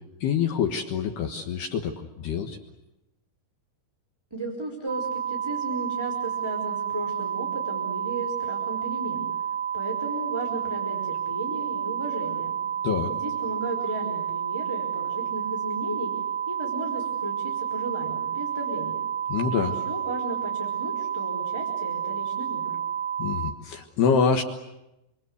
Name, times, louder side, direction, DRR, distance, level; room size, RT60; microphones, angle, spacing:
voice 1, 0.2-2.6 12.8-13.1 19.3-19.8 23.2-24.4, left 6 dB, 65° left, 4 dB, 2.9 m, -26 dB
voice 2, 4.3-9.2 9.7-12.6 13.1-16.1 16.5-19.0 19.6-22.8, right 2 dB, 5° right, -1 dB, 4.2 m, -35 dB
sound 1, 4.9-23.5, right 8 dB, 45° right, 1.6 m, -30 dB
28.5 x 25.5 x 8.1 m, 0.93 s
omnidirectional pair, 5.9 m